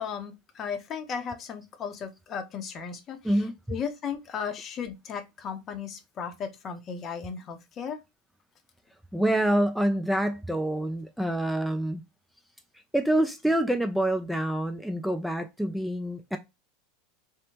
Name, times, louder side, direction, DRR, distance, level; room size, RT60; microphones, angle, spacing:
voice 1, 0.0-3.4 3.7-8.0, left 7 dB, 40° left, 0.6 m, -35 dB
voice 2, 9.1-12.0 12.7-16.4, right 1 dB, ahead, 0.3 m, -26 dB
2.8 x 2.1 x 2.7 m
hypercardioid pair, 85°, 0 cm